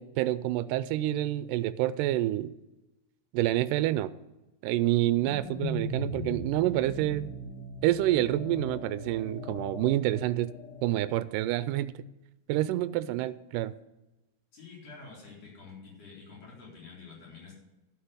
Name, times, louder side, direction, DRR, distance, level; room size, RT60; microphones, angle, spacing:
voice 1, 0.0-2.5 3.3-4.1 4.6-7.3 7.8-10.5 10.8-11.9 12.5-13.7, right 14 dB, 85° right, 14 dB, 2.1 m, -28 dB
sound 1, 4.9-11.3, left 1 dB, 75° left, 3.0 m, -39 dB
voice 2, 14.5-17.5, left 4 dB, 50° left, -4 dB, 5.2 m, -48 dB
11.5 x 6.2 x 8.0 m, 0.98 s
omnidirectional pair, 3.8 m